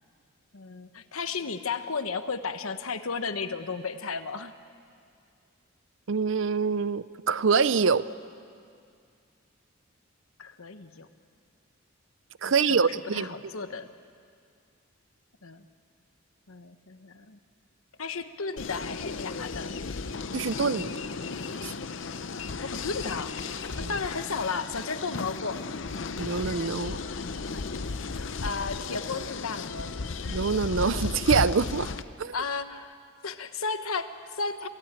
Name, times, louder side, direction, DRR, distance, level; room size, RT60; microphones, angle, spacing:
voice 1, 0.5-4.5 10.4-11.1 12.4-13.9 15.4-15.6 16.5-17.4 18.0-19.7 22.6-23.4 23.7-25.8 28.4-29.9 32.3-33.0 33.2-34.7, left 4 dB, 90° left, 9 dB, 1.2 m, -34 dB
voice 2, 6.1-8.0 12.4-13.3 20.3-20.9 21.6-21.7 23.8-23.9 26.2-27.0 30.3-31.9 32.2-32.3, right 5 dB, 65° right, 16 dB, 0.6 m, -25 dB
sound 1, 18.6-32.0, left 4 dB, 60° left, 0.7 m, -35 dB
27.0 x 16.5 x 8.9 m, 2.3 s
head